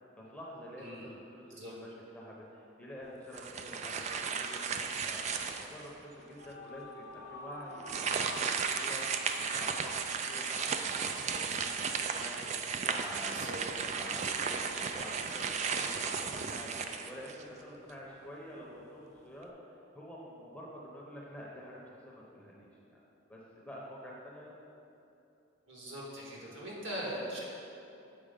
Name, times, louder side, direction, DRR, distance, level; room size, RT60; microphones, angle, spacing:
voice 1, 0.2-4.6 5.0-7.8 8.2-13.5 13.8-19.5 19.9-23.0 23.3-24.5, equal, 5° left, -4 dB, 0.8 m, -48 dB
voice 2, 0.8-1.1 1.5-1.7 13.3-13.6 25.7-27.4, equal, 65° right, -4 dB, 1.8 m, -41 dB
sound 1, 3.3-5.9 6.4-6.5 7.8-17.6, right 5 dB, 35° right, 0.3 m, -35 dB
sound 2, 6.2-11.5, left 1 dB, 45° left, 0.9 m, -50 dB
7.4 x 4.7 x 5.2 m, 2.8 s
head